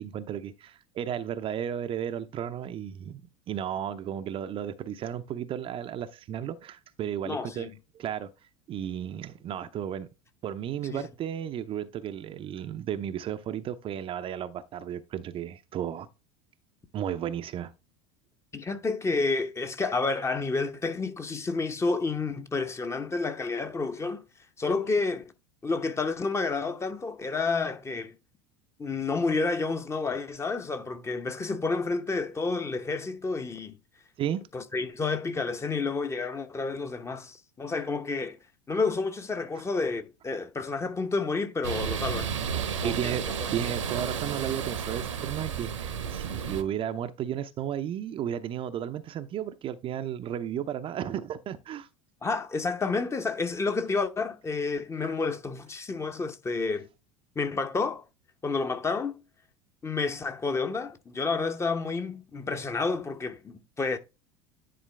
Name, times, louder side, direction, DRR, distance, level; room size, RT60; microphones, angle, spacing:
voice 1, 0.0-3.2 3.5-7.7 7.9-8.3 8.7-10.1 10.4-16.1 16.9-17.7 34.2-34.4 42.8-51.9, right 10 dB, 35° right, 0.6 m, -34 dB
voice 2, 7.2-7.7 10.9-11.0 18.5-24.2 24.6-25.2 25.6-28.1 28.8-33.7 34.5-38.4 38.7-42.3 42.8-43.1 52.2-56.9 57.4-58.0 58.4-59.2 59.8-64.0, left 4 dB, 15° left, 0.9 m, -30 dB
sound 1, 41.6-46.6, right 7 dB, 75° right, 1.1 m, -32 dB
10.0 x 4.4 x 3.3 m
figure-of-eight pair, 75°, 16 cm